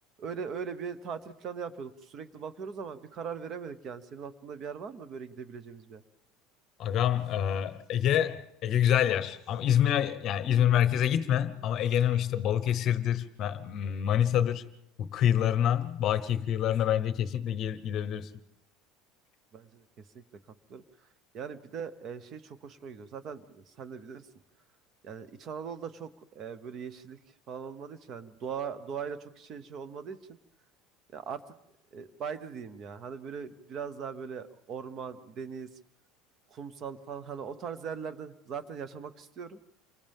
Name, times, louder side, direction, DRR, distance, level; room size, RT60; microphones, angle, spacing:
voice 1, 0.2-6.0 19.5-20.2 20.7-20.8 21.3-24.3 25.0-27.2 27.5-30.4 31.1-31.4 31.9-35.7 36.5-39.6, right 6 dB, 30° right, 1.0 m, -40 dB
voice 2, 6.8-14.6 15.0-18.3, left 10 dB, 35° left, 0.9 m, -27 dB
29.0 x 25.0 x 3.6 m
cardioid pair, 175°, 0 cm